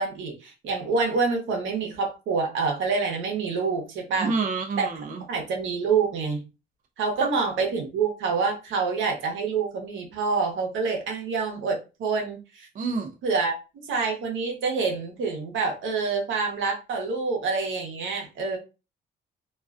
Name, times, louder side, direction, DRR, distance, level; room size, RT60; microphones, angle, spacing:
voice 1, 0.0-4.3 4.8-4.9 5.3-6.4 7.0-12.7 13.2-13.5 13.9-18.6, right 4 dB, 80° right, 0.9 m, -27 dB
voice 2, 4.2-5.2 7.2-7.3 12.7-13.1, right 4 dB, 40° right, 0.5 m, -28 dB
2.4 x 2.2 x 2.4 m
cardioid pair, 90°, 20 cm